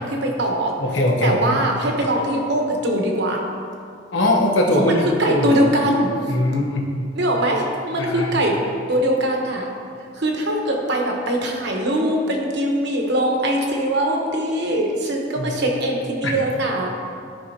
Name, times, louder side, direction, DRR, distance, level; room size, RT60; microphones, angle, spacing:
voice 1, 0.0-0.7 1.2-3.4 4.7-6.1 7.1-8.6 8.9-9.7 10.2-16.9, right 1 dB, 65° right, 1 dB, 1.1 m, -22 dB
voice 2, 0.8-1.5 4.1-5.6 6.3-6.8 8.0-8.4 15.4-15.5 16.2-16.3, left 1 dB, 80° left, 0 dB, 1.0 m, -21 dB
12.5 x 5.3 x 2.8 m, 2.3 s
head